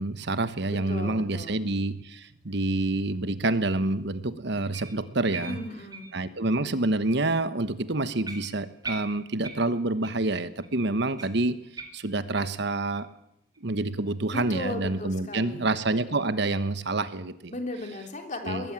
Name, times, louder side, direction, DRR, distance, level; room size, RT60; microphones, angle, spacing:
voice 1, 0.0-5.6 6.1-11.6 11.9-13.1 13.6-17.5 18.4-18.6, right 2 dB, 65° right, 13 dB, 1.2 m, -27 dB
voice 2, 0.7-1.6 5.3-6.1 14.3-15.7 17.5-18.7, left 2 dB, 40° left, 4 dB, 3.6 m, -36 dB
sound 1, 4.7-6.7 7.1-7.3 7.7-7.8 8.2-10.3 10.6-10.7 11.2-12.6 12.9-13.1 13.5-13.6 14.1-14.2, right 3 dB, 20° right, 2.7 m, -42 dB
21.0 x 14.5 x 9.0 m, 0.77 s
head